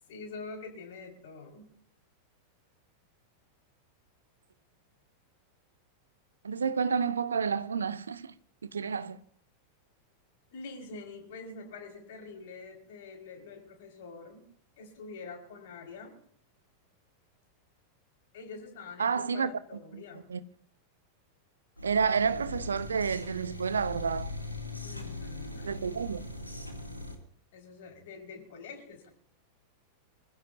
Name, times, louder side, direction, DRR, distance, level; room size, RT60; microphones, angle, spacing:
voice 1, 0.1-1.7 10.5-14.5 14.8-16.1 18.3-20.3 24.8-25.7 27.5-29.1, left 4 dB, 55° left, 5.2 m, -45 dB
voice 2, 6.4-8.3 8.6-9.2 19.0-19.5 19.9-20.0 20.3-20.4 21.8-24.3 25.6-26.2, right 6 dB, 70° right, 0.8 m, -30 dB
sound 1, 21.8-27.2, left 2 dB, 90° right, 2.6 m, -40 dB
25.5 x 15.5 x 2.8 m
figure-of-eight pair, 90°, 0 cm